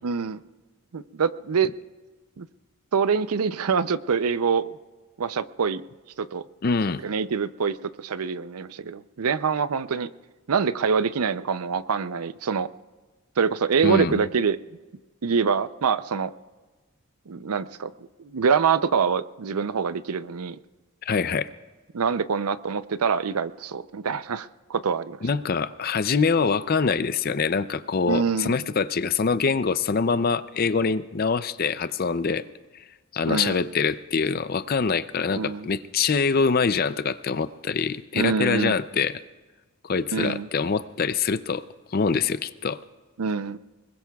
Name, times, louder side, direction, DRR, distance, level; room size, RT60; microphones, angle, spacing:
voice 1, 0.0-0.4 0.9-1.7 2.4-2.5 2.9-4.7 5.2-5.8 6.2-6.4 7.0-10.1 10.5-12.7 13.4-14.6 15.2-16.3 17.3-17.9 18.3-20.6 21.9-25.2 28.1-28.5 33.3-33.6 35.4-35.7 38.1-38.8 40.1-40.5 43.2-43.6, right 6 dB, 80° right, 14 dB, 0.5 m, -25 dB
voice 2, 6.6-7.0 13.8-14.2 21.0-21.5 25.2-32.4 32.7-32.8 33.1-39.2 39.8-41.6 41.9-42.8, left 5 dB, 40° left, 14 dB, 0.4 m, -24 dB
24.5 x 21.5 x 2.3 m, 1.3 s
head